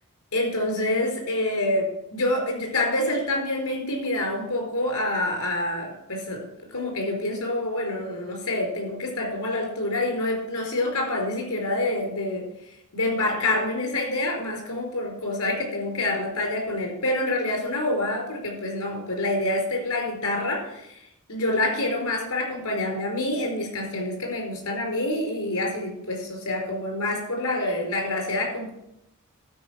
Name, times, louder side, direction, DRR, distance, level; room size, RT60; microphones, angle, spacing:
voice 1, 0.3-6.4 6.7-12.4 12.9-21.0 21.3-28.7, left 1 dB, 90° left, 0 dB, 4.6 m, -27 dB
12.0 x 5.4 x 7.6 m, 0.83 s
head